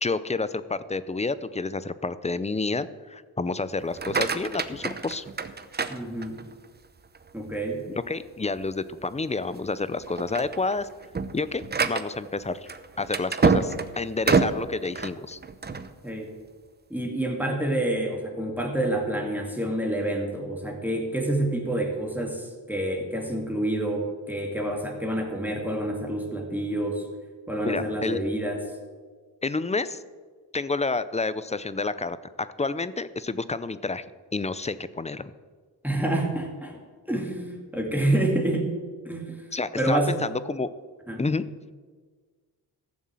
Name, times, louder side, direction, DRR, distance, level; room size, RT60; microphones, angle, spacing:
voice 1, 0.0-5.2 7.9-10.9 11.3-12.7 13.0-15.4 27.6-28.2 29.4-30.0 30.5-34.0 34.3-35.3 39.5-40.7 41.2-41.4, left 3 dB, 15° left, 15 dB, 0.6 m, -29 dB
sound 1, 3.8-6.6 7.1-7.6 8.1-8.2 8.6-8.7 9.4-9.7 10.0-15.9, right 4 dB, 25° right, 0.8 m, -27 dB
voice 2, 5.9-6.4 7.3-7.8 16.0-16.3 16.9-27.1 27.5-28.6 35.8-36.8 37.1-38.7 39.0-40.2 41.1-41.3, right 1 dB, 5° right, 0 dB, 2.5 m, -28 dB
14.5 x 7.2 x 7.6 m, 1.5 s
cardioid pair, 90°, 40 cm